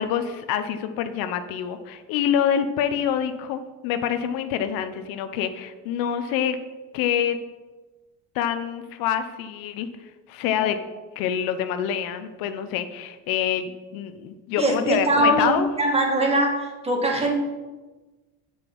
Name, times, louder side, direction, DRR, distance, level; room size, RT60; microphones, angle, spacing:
voice 1, 0.0-6.6 6.9-7.4 8.3-9.9 10.3-10.8 11.2-15.7, left 9 dB, 75° left, 9 dB, 0.9 m, -26 dB
voice 2, 14.6-17.3, right 1 dB, 15° right, 1 dB, 1.8 m, -22 dB
8.2 x 6.9 x 5.5 m, 1.2 s
cardioid pair, 125°, 35 cm